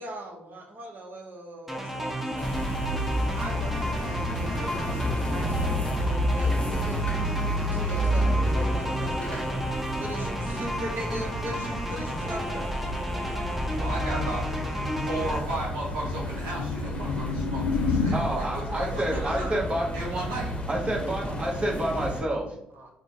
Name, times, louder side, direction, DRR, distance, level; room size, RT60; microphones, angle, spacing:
voice 1, 0.0-2.6 3.4-7.1 7.7-9.6 10.0-12.7 19.1-19.8 22.7-22.9, right 1 dB, 50° right, 2 dB, 0.9 m, -39 dB
sound 1, 1.7-15.4, equal, 5° right, 0.7 m, -33 dB
sound 2, 2.4-22.2, equal, 25° left, 0.9 m, -30 dB
sound 3, 12.9-18.2, left 4 dB, 85° left, 0.3 m, -31 dB
voice 2, 13.7-14.4 15.1-19.5 19.9-20.6, right 2 dB, 80° right, -4 dB, 0.7 m, -34 dB
voice 3, 18.1-19.9 20.7-22.5, right 1 dB, 30° right, -2 dB, 1.2 m, -29 dB
3.8 x 2.2 x 3.6 m, 0.78 s
hypercardioid pair, 45°, 4 cm